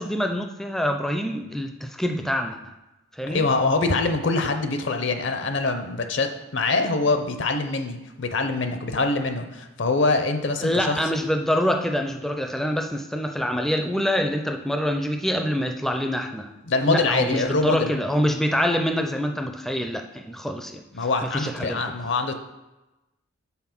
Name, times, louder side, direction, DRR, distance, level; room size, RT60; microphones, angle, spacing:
voice 1, 0.0-2.6 3.2-3.5 10.6-16.5 16.9-20.8 21.3-21.8, equal, ahead, 4 dB, 0.4 m, -25 dB
voice 2, 3.3-11.0 16.7-17.9 20.9-22.4, left 3 dB, 65° left, 6 dB, 0.7 m, -24 dB
5.7 x 4.3 x 6.0 m, 1.0 s
head